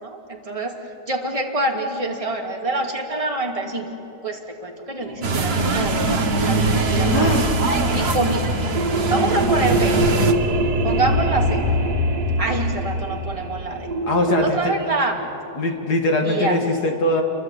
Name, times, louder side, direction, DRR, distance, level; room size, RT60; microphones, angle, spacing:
voice 1, 0.0-0.8 1.1-3.9 4.2-6.1 6.4-7.4 7.9-8.5 9.1-10.0 10.8-11.6 12.4-13.9 14.4-15.2 16.2-16.6, right 2 dB, 20° right, 0 dB, 2.5 m, -26 dB
sound 1, 5.0-14.4, equal, 70° right, 2.4 m, -24 dB
sound 2, 5.2-10.3, right 3 dB, 40° right, 1.5 m, -22 dB
voice 2, 7.1-7.4 14.1-14.7 15.6-17.2, left 1 dB, 75° left, 3 dB, 3.0 m, -21 dB
29.0 x 23.5 x 8.5 m, 2.8 s
omnidirectional pair, 1.7 m